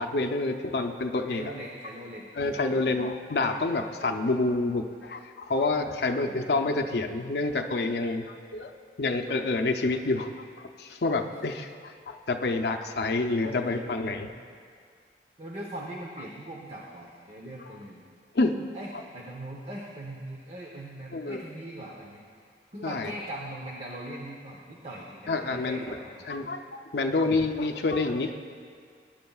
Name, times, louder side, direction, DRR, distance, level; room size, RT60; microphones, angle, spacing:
voice 1, 0.0-1.4 2.3-8.7 9.0-10.3 10.6-14.3 17.7-17.8 18.3-18.5 21.1-21.4 22.8-23.1 25.3-25.8 26.3-28.3, left 3 dB, 65° left, 4 dB, 0.5 m, -28 dB
voice 2, 1.3-2.8 6.1-6.6 13.4-14.3 15.4-18.0 18.7-22.2 22.7-26.3, right 1 dB, 35° right, -2 dB, 0.9 m, -41 dB
19.0 x 10.0 x 2.3 m, 2.1 s
head